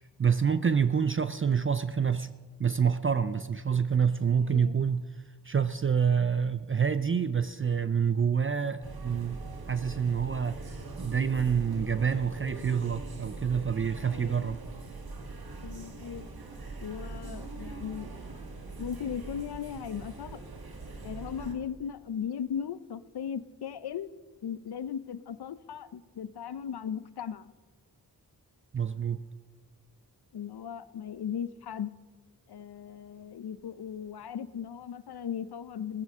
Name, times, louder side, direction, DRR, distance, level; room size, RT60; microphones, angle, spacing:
voice 1, 0.2-2.3 2.6-5.0 5.4-9.4 9.7-10.6 11.0-14.6 28.7-29.2, right 7 dB, 35° right, 12 dB, 0.4 m, -27 dB
voice 2, 4.3-4.7 14.1-14.6 15.6-16.3 16.8-18.1 18.8-20.4 21.0-27.5 30.3-31.9 32.5-36.0, left 8 dB, 80° left, 15 dB, 0.6 m, -37 dB
sound 1, 8.8-21.6, right 3 dB, 70° right, 1.6 m, -42 dB
17.0 x 15.0 x 3.6 m, 1.3 s
wide cardioid pair, 95°, 38 cm